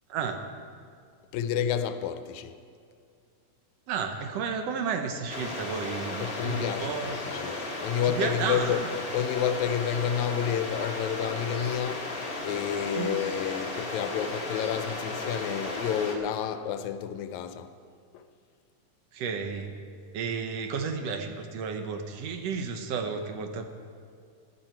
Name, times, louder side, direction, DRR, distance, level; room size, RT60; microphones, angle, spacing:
voice 1, 0.1-0.4 3.9-7.2 8.1-9.0 13.0-13.2 19.1-19.8 20.1-23.7, right 5 dB, 70° right, 6 dB, 1.7 m, -32 dB
voice 2, 1.3-2.6 6.2-8.9 9.1-12.1 12.4-17.7 18.1-18.2, left 9 dB, 85° left, 11 dB, 2.0 m, -30 dB
sound 1, 5.3-16.2, left 2 dB, 45° left, 0.7 m, -35 dB
15.0 x 10.5 x 4.5 m, 2.3 s
omnidirectional pair, 3.3 m